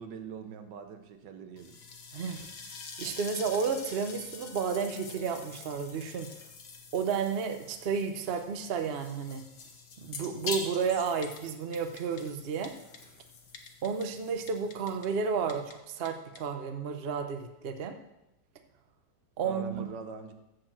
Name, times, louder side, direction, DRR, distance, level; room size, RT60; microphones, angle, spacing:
voice 1, 0.0-1.8 19.4-20.3, right 5 dB, 80° right, 7 dB, 1.6 m, -43 dB
sound 1, 1.6-15.8, left 4 dB, 70° left, 1.8 m, -45 dB
voice 2, 2.1-2.5 3.0-6.3 6.9-9.4 10.0-12.7 13.8-17.9 19.4-19.9, right 6 dB, 45° right, 7 dB, 0.9 m, -32 dB
Typing, 11.2-11.4 11.7-12.2 12.6-13.0 13.5-14.1 14.5-15.1 15.5-15.8 16.1-16.2 16.4-16.5, left 6 dB, 50° left, 1.3 m, -48 dB
14.0 x 4.6 x 7.5 m, 0.91 s
omnidirectional pair, 1.9 m